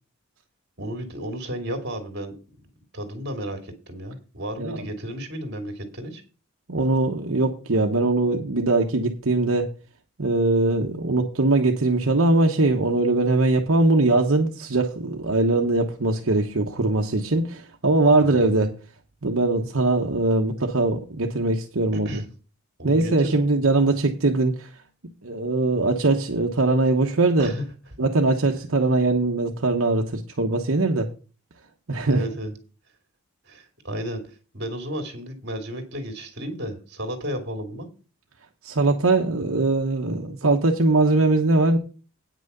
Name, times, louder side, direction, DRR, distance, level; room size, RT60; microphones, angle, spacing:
voice 1, 0.8-2.3 2.9-6.2 18.2-18.6 22.0-22.3 22.8-23.4 27.4-27.6 32.1-32.5 33.5-37.9, equal, 50° right, 6 dB, 2.5 m, -33 dB
voice 2, 6.7-9.7 10.2-18.7 19.2-22.2 22.8-24.7 25.2-27.5 28.0-31.1 31.9-32.2 38.6-41.8, right 2 dB, 65° right, 2 dB, 1.1 m, -21 dB
9.3 x 6.1 x 6.7 m, 0.35 s
head